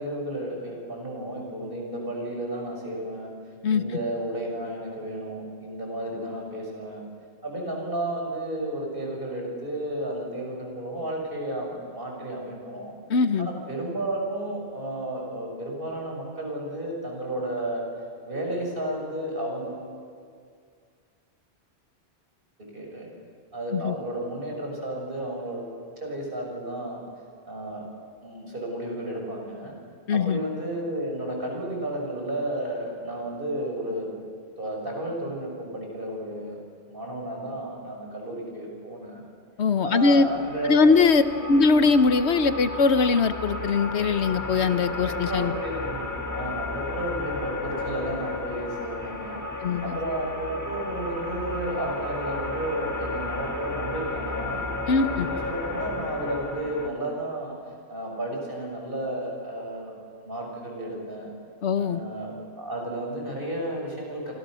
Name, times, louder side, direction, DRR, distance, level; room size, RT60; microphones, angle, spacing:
voice 1, 0.0-3.3 3.7-7.0 7.4-13.0 13.4-17.8 18.2-19.8 22.6-23.1 23.5-27.0 27.5-27.8 28.2-29.8 30.1-34.1 34.6-36.6 36.9-39.2 39.8-41.0 41.3-41.6 45.0-49.4 49.8-57.5 57.9-61.3 61.8-64.3, right 1 dB, 55° right, 0 dB, 6.3 m, -32 dB
voice 2, 13.1-13.5 23.7-23.9 30.1-30.4 39.6-40.3 40.7-45.5 49.6-50.0 54.9-55.3 61.6-62.0, left 4 dB, 75° left, 11 dB, 1.3 m, -21 dB
sound 1, 40.1-56.9, left 2 dB, 15° left, 1.8 m, -33 dB
29.5 x 25.5 x 6.4 m, 2.2 s
omnidirectional pair, 1.1 m